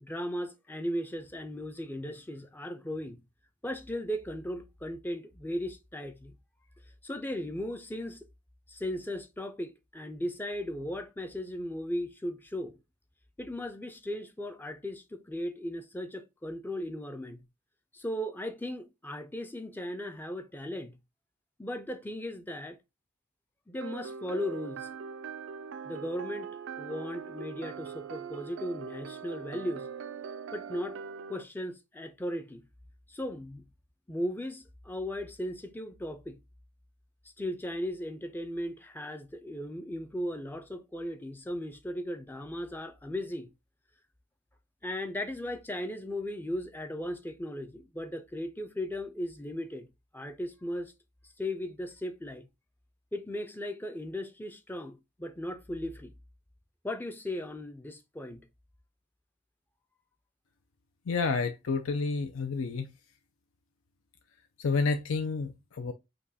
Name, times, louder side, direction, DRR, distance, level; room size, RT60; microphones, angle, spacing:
voice 1, 0.0-3.2 3.6-6.3 7.0-8.3 8.7-12.8 13.4-17.4 17.9-21.0 21.6-22.8 23.7-24.9 25.8-26.5 26.8-29.9 30.5-31.0 31.3-32.7 33.1-33.6 34.1-36.4 37.4-43.5 44.8-50.9 51.4-52.5 53.1-56.1 56.8-58.5, left 1 dB, 10° left, 0.4 m, -37 dB
sound 1, 23.8-31.4, right 6 dB, 65° right, 0.4 m, -41 dB
voice 2, 61.1-62.9 64.6-65.9, left 4 dB, 80° left, 0.5 m, -30 dB
5.1 x 2.3 x 4.0 m
head